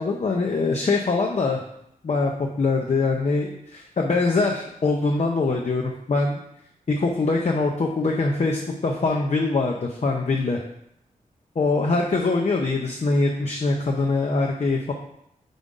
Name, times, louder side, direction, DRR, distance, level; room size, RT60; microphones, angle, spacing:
voice 1, 0.0-1.6 2.0-6.4 6.9-10.6 11.6-14.9, left 3 dB, 50° left, 1 dB, 0.6 m, -23 dB
5.4 x 4.9 x 3.7 m, 0.76 s
wide cardioid pair, 100°, 15 cm